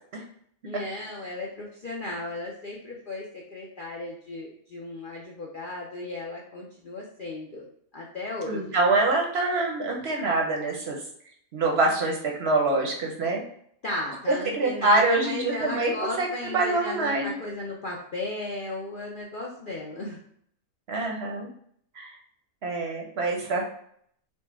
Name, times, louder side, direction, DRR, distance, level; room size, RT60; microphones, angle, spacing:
voice 1, 0.6-7.6 7.9-8.8 13.8-20.2, left 2 dB, 55° left, -2 dB, 0.5 m, -35 dB
voice 2, 8.5-11.0 11.5-13.4 14.3-16.3 16.5-17.4 20.9-21.5 22.0-22.2 22.6-23.6, right 2 dB, 55° right, 0 dB, 0.8 m, -25 dB
4.4 x 2.1 x 4.4 m, 0.67 s
omnidirectional pair, 1.5 m